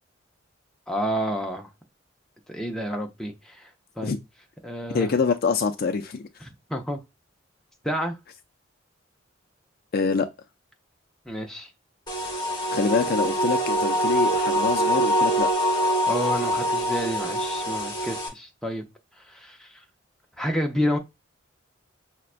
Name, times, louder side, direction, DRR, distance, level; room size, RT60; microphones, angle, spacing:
voice 1, 0.9-1.7 2.5-3.7 4.0-4.1 4.6-5.1 6.7-7.0 7.8-8.2 11.3-11.7 16.1-18.8 19.3-19.8 20.4-21.0, equal, 5° left, 0.6 m, -29 dB
voice 2, 4.9-6.3 9.9-10.3 12.7-15.5, left 4 dB, 50° left, 0.4 m, -25 dB
sound 1, 12.1-18.3, equal, 20° left, 1.1 m, -24 dB
5.6 x 2.2 x 2.4 m
head